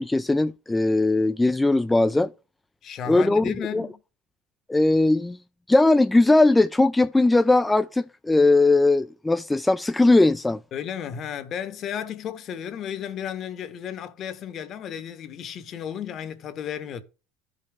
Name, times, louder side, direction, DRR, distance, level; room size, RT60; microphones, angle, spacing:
voice 1, 0.0-2.3 3.1-3.9 4.7-5.4 5.7-10.6, left 2 dB, 10° left, 0.3 m, -19 dB
voice 2, 2.8-4.0 10.7-17.0, left 8 dB, 45° left, 1.2 m, -33 dB
13.0 x 5.3 x 3.4 m
supercardioid pair, 115°, 0 cm